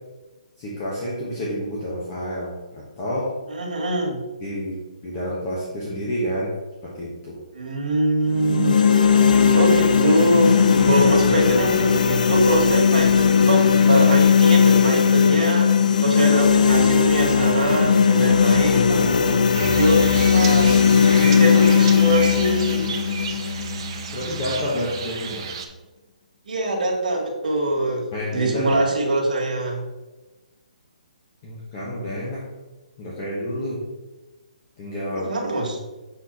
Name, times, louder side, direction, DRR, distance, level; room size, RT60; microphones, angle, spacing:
voice 1, 0.6-3.3 4.4-6.5 6.8-7.4 10.7-11.1 24.1-25.5 28.1-28.8 31.4-32.4 33.0-33.8 34.8-35.3, equal, 25° left, -6 dB, 1.3 m, -29 dB
voice 2, 3.5-4.2 7.5-8.8 9.6-15.7 16.0-19.4 19.7-20.8 21.2-22.9 26.5-29.8 35.1-35.8, right 1 dB, 75° right, 0 dB, 1.9 m, -23 dB
sound 1, 8.3-24.4, left 6 dB, 70° left, 0.6 m, -17 dB
sound 2, 19.5-25.7, right 7 dB, 40° right, 0.7 m, -32 dB
7.3 x 4.4 x 4.1 m, 1.2 s
hypercardioid pair, 165°, 4 cm